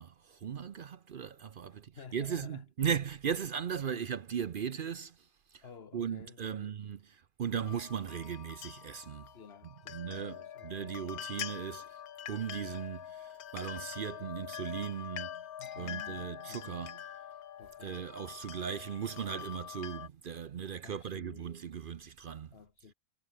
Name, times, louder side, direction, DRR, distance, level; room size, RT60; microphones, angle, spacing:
voice 1, 0.0-5.3 5.5-5.6 5.9-9.3 9.9-10.4 10.6-11.8 12.3-15.4 15.8-17.0 17.8-22.5, right 7 dB, 55° right, 0.6 m, -37 dB
voice 2, 1.6-2.6 3.9-4.0 5.6-6.8 9.3-11.0 11.3-11.8 15.6-16.9 17.6-18.1 20.8-21.5 22.5-22.9, left 6 dB, 45° left, 1.4 m, -53 dB
sound 1, 7.7-20.1, left 10 dB, 90° left, 1.5 m, -45 dB
omnidirectional pair, 1.5 m